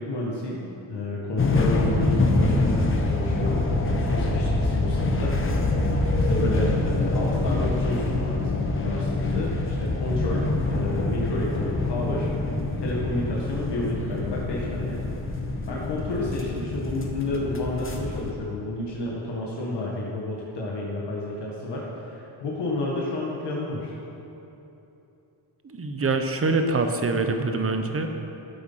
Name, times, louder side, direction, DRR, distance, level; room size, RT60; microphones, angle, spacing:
voice 1, 0.0-5.6 6.2-12.3 12.8-15.1 15.7-23.9, left 2 dB, 65° left, -4 dB, 1.8 m, -30 dB
sound 1, 1.4-18.3, left 2 dB, 25° left, 1.2 m, -25 dB
voice 2, 25.6-28.1, right 3 dB, 30° right, 6 dB, 1.0 m, -25 dB
13.0 x 8.2 x 5.7 m, 3.0 s
cardioid pair, 120°, 45 cm